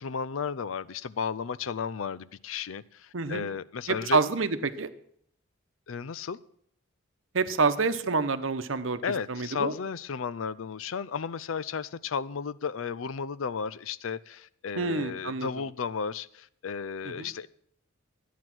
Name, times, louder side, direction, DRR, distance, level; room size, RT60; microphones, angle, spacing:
voice 1, 0.0-4.2 5.9-6.4 9.0-17.5, left 6 dB, 80° left, 0.5 m, -34 dB
voice 2, 3.1-3.5 3.9-4.9 7.3-9.0 9.3-9.7 14.8-15.5 17.2-17.3, right 4 dB, 70° right, 0.9 m, -27 dB
13.5 x 9.4 x 6.1 m
head